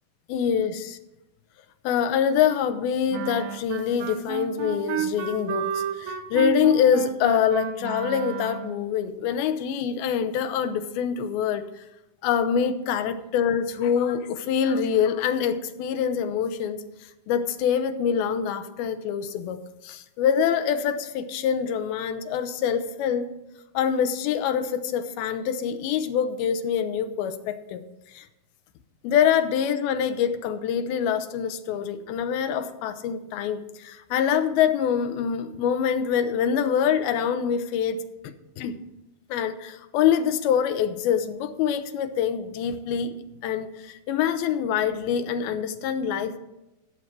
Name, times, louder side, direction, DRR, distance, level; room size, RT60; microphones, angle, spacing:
voice 1, 0.3-1.0 1.8-11.8 12.2-16.8 17.3-19.6 19.8-23.3 23.7-27.8 28.1-28.3 29.0-38.8 39.3-46.4, left 8 dB, 80° left, 10 dB, 2.6 m, -25 dB
Wind instrument woodwind instrument, 3.1-8.9, right 8 dB, 70° right, 1.7 m, -32 dB
15.5 x 7.2 x 4.5 m, 0.96 s
omnidirectional pair, 4.4 m